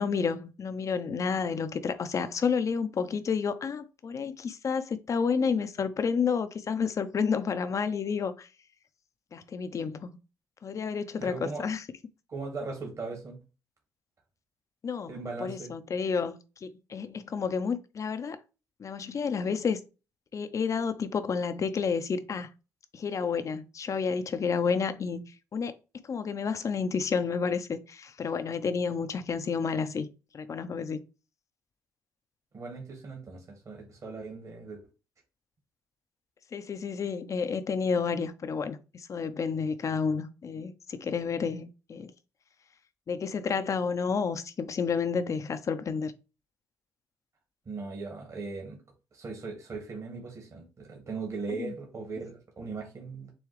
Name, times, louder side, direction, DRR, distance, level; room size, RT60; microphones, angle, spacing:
voice 1, 0.0-8.5 9.3-10.2 10.6-11.8 14.8-18.4 18.8-19.8 20.3-22.5 22.9-25.2 25.5-25.7 26.0-30.1 30.3-31.0 36.5-42.1 43.1-46.1 51.5-51.7, left 5 dB, 45° left, 0.6 m, -30 dB
voice 2, 11.2-11.6 12.3-13.4 15.1-15.7 32.5-34.8 47.7-48.8 49.1-53.3, right 4 dB, 45° right, 1.8 m, -38 dB
6.9 x 2.3 x 3.2 m
supercardioid pair, 60°, 7 cm